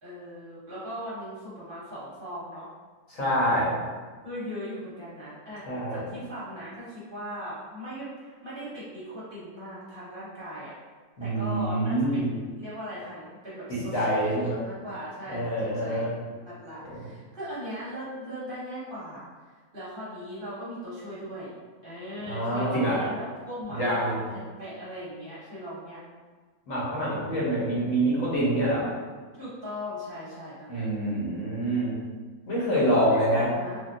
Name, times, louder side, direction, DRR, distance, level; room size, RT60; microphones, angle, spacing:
voice 1, 0.0-2.7 4.2-10.7 11.2-19.3 19.7-21.5 21.8-26.2 29.3-30.8 32.7-33.8, equal, 45° right, -9 dB, 0.9 m, -38 dB
voice 2, 3.1-3.8 5.7-6.1 11.2-12.3 13.7-14.6 15.3-16.1 16.9-17.0 22.2-23.0 23.7-24.2 26.7-28.9 30.7-31.9 32.5-33.5, right 1 dB, 70° left, -7 dB, 1.4 m, -26 dB
3.6 x 2.2 x 2.6 m, 1.5 s
omnidirectional pair, 1.5 m